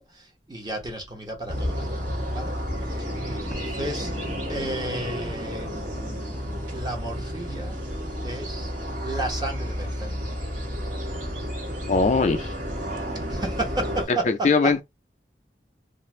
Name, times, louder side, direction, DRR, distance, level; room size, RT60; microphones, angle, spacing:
voice 1, 0.0-2.1 2.3-2.6 2.8-4.2 4.5-5.7 6.7-7.8 8.2-8.7 9.0-10.2 13.1-14.8, right 2 dB, 25° right, 0.8 m, -33 dB
sound 1, 1.5-14.1, equal, 50° right, 1.3 m, -31 dB
voice 2, 11.9-12.5 14.3-14.8, left 4 dB, 40° left, 0.3 m, -20 dB
2.5 x 2.4 x 3.1 m
head